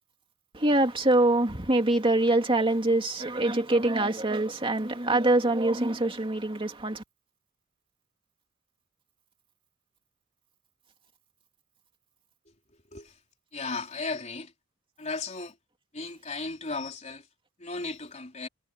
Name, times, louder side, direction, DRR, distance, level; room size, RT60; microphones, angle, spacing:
voice 1, 0.5-7.0, right 2 dB, 25° right, 2.6 m, -24 dB
voice 2, 13.5-14.5 15.0-15.5 15.9-17.2 17.6-18.5, left 3 dB, 35° left, 3.8 m, -35 dB
head